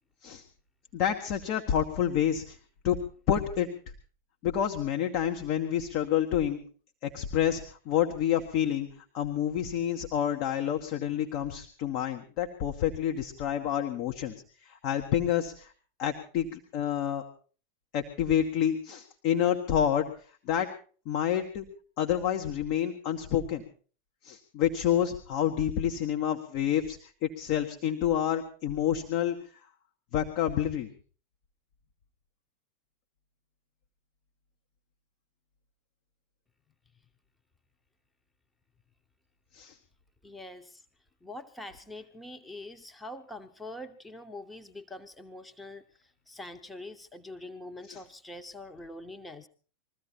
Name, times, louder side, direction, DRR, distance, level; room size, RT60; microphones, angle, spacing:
voice 1, 0.9-2.6 2.8-3.0 3.3-3.7 4.4-6.6 7.0-14.3 14.6-15.7 16.0-17.2 17.9-20.0 20.4-20.7 21.0-21.6 22.0-23.6 24.2-29.4 30.1-30.9 39.5-39.8 47.9-48.0, left 10 dB, 45° left, 4 dB, 1.5 m, -28 dB
voice 2, 40.2-40.8 41.2-49.5, left 1 dB, 5° left, 6 dB, 1.2 m, -44 dB
22.0 x 14.5 x 4.4 m, 0.41 s
figure-of-eight pair, 90°, 0 cm